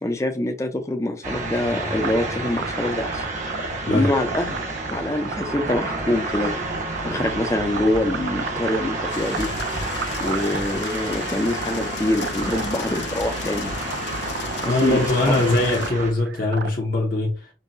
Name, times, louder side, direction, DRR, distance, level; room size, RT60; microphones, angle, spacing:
voice 1, 0.0-3.2 3.9-4.6 4.9-6.5 7.0-9.5 10.2-13.7 14.6-15.4, left 1 dB, 15° left, 0.5 m, -25 dB
sound 1, 1.2-16.1, right 2 dB, 45° right, 1.0 m, -30 dB
sound 2, 2.0-16.7, right 5 dB, 65° right, 0.4 m, -34 dB
sound 3, 9.1-15.9, left 6 dB, 70° left, 0.4 m, -35 dB
voice 2, 14.7-17.5, left 2 dB, 50° left, 0.8 m, -22 dB
5.4 x 2.2 x 2.6 m
head